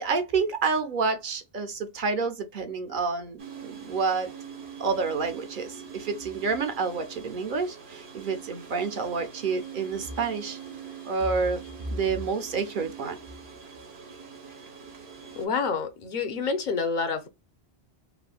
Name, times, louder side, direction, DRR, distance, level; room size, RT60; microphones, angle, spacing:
voice 1, 0.0-4.3 4.8-10.6 11.0-11.6 11.9-13.2, right 4 dB, 60° right, 0.7 m, -29 dB
sound 1, 3.4-15.5, right 7 dB, 80° right, 1.2 m, -44 dB
voice 2, 15.4-17.3, left 5 dB, 50° left, 0.8 m, -28 dB
3.4 x 2.1 x 2.3 m
omnidirectional pair, 1.1 m